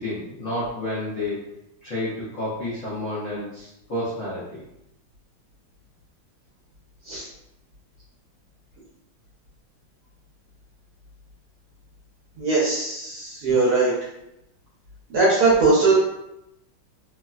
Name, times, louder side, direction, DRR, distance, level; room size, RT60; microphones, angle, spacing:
voice 1, 0.0-1.4 1.8-4.6, left 1 dB, 70° left, -9 dB, 0.7 m, -30 dB
voice 2, 12.4-13.9 15.1-16.0, right 3 dB, 65° right, -6 dB, 1.0 m, -20 dB
3.3 x 2.1 x 2.3 m, 0.85 s
omnidirectional pair, 2.3 m